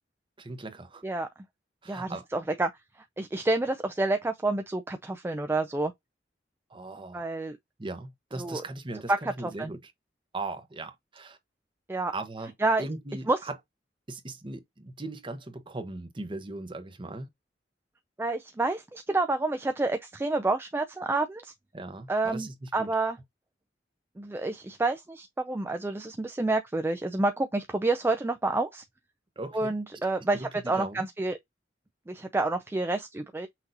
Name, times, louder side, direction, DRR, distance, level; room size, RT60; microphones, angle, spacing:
voice 1, 0.4-1.0 1.8-2.3 6.7-7.3 7.8-9.9 10.3-11.4 12.1-12.5 12.8-13.6 14.1-17.3 21.7-22.9 29.4-30.0 30.3-31.1, right 2 dB, 30° right, 0.9 m, -39 dB
voice 2, 1.9-2.7 3.2-5.9 7.1-7.6 8.4-8.6 9.1-9.2 9.6-9.7 11.9-12.1 12.6-12.8 13.3-13.4 18.2-21.5 22.1-23.2 24.2-28.8 29.5-31.4 32.1-33.5, right 2 dB, 15° right, 0.3 m, -28 dB
5.8 x 2.8 x 2.5 m
head